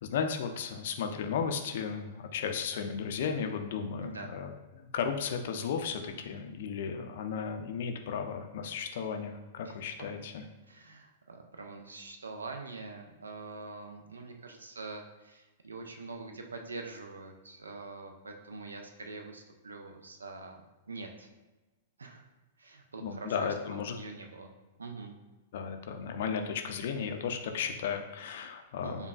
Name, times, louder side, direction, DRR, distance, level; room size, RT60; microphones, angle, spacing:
voice 1, 0.0-10.4 23.0-24.0 25.5-29.1, left 6 dB, 55° left, 5 dB, 0.4 m, -35 dB
voice 2, 4.0-4.3 9.6-10.1 10.7-20.6 20.9-21.3 22.0-22.2 22.6-24.5 24.8-25.1 28.8-29.1, right 3 dB, 80° right, 3 dB, 0.4 m, -44 dB
5.2 x 2.2 x 2.3 m, 1.1 s
figure-of-eight pair, 105°, 0 cm